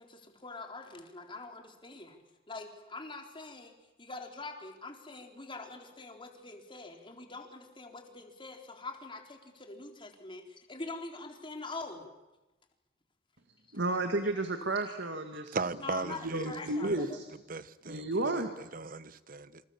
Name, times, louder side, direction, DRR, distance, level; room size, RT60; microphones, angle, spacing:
voice 1, 0.0-2.2 2.5-12.1 15.8-17.2, left 3 dB, 30° left, 3.9 m, -44 dB
voice 2, 13.7-15.6 16.2-17.3 17.9-18.5, right 2 dB, 70° right, 2.2 m, -32 dB
voice 3, 15.3-17.0 17.5-19.6, right 3 dB, 50° right, 1.2 m, -38 dB
28.0 x 27.5 x 7.3 m
head